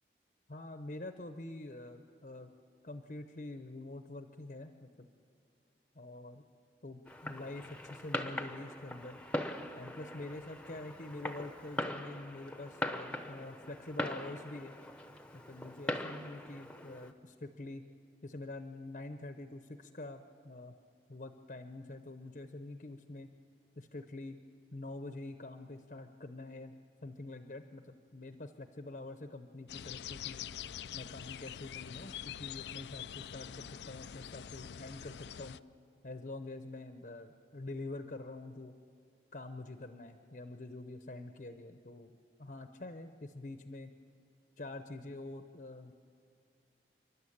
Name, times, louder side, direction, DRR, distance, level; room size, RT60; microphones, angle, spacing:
voice 1, 0.5-2.5 2.8-5.1 5.9-6.4 6.8-9.2 9.8-14.7 15.3-17.8 18.2-20.7 21.1-23.3 23.8-24.4 24.7-26.7 27.0-30.5 30.9-35.6 36.0-38.7 39.3-42.1 42.4-43.9 44.6-45.9, left 2 dB, 50° left, 7 dB, 0.8 m, -46 dB
Fireworks, 7.1-17.1, left 1 dB, 5° left, 0.9 m, -41 dB
sound 1, 29.7-35.6, left 9 dB, 80° left, 0.4 m, -45 dB
29.5 x 12.0 x 8.7 m, 2.3 s
head